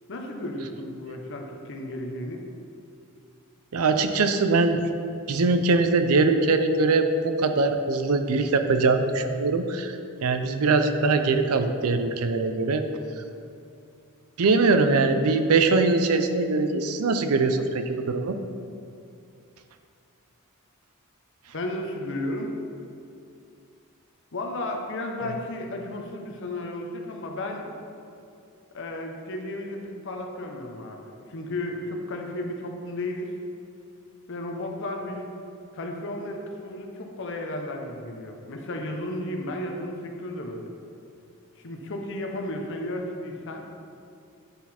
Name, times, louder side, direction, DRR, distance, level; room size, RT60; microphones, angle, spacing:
voice 1, 0.1-2.4 21.5-22.5 24.3-27.7 28.7-33.3 34.3-35.3 35.7-40.7 41.6-43.6, left 1 dB, 60° left, 2 dB, 0.8 m, -33 dB
voice 2, 3.7-4.8 5.3-12.8 14.4-18.4, right 3 dB, 85° right, 8 dB, 0.5 m, -22 dB
9.6 x 4.1 x 4.3 m, 2.5 s
head